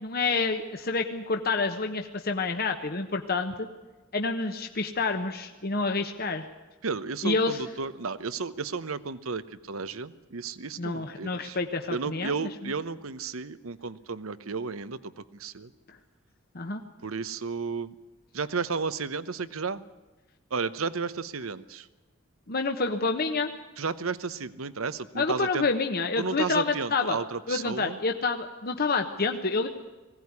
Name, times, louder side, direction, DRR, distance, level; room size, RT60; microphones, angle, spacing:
voice 1, 0.0-3.7 4.1-6.5 7.2-7.6 10.8-12.7 16.5-16.8 22.5-23.5 25.2-27.2 27.5-29.7, left 4 dB, 50° left, 5 dB, 1.1 m, -28 dB
voice 2, 6.8-11.6 11.9-15.7 17.0-17.9 18.3-19.8 20.5-21.9 23.8-25.7 26.2-28.0, right 4 dB, 85° right, 15 dB, 0.9 m, -33 dB
21.0 x 17.0 x 9.6 m, 1.2 s
head